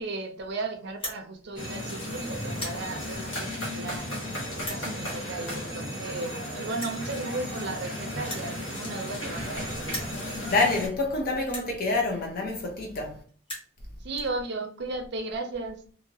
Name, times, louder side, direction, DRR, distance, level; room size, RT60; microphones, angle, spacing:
voice 1, 0.0-4.1 4.5-10.2 14.0-15.8, right 3 dB, 60° right, 0.5 m, -35 dB
sound 1, 0.9-1.2 1.9-2.1 2.4-2.8 3.6-3.7 4.6-4.8 5.9-6.0 6.2-6.3 6.8-7.0 8.2-9.5 9.8-10.2 10.9-11.0 11.5-11.7 12.6-12.7 12.9-13.0 13.3-13.7, left 1 dB, 30° left, 1.2 m, -37 dB
sound 2, 1.6-10.9, equal, 75° left, 1.3 m, -35 dB
voice 2, 10.5-13.2, left 3 dB, 50° left, 0.6 m, -27 dB
2.8 x 2.6 x 2.7 m
head